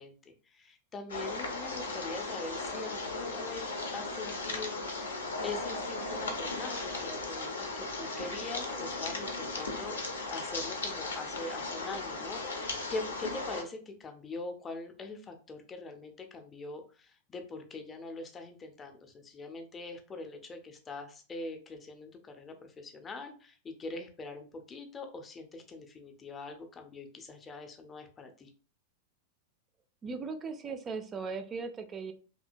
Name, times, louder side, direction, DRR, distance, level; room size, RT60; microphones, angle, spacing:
voice 1, 0.0-10.0 10.3-28.5, left 3 dB, 20° left, 5 dB, 0.6 m, -43 dB
sound 1, 1.1-13.6, left 3 dB, 70° left, 0.6 m, -36 dB
voice 2, 30.0-32.1, right 4 dB, 25° right, 9 dB, 0.4 m, -38 dB
2.7 x 2.7 x 2.5 m, 0.38 s
figure-of-eight pair, 90°, 0 cm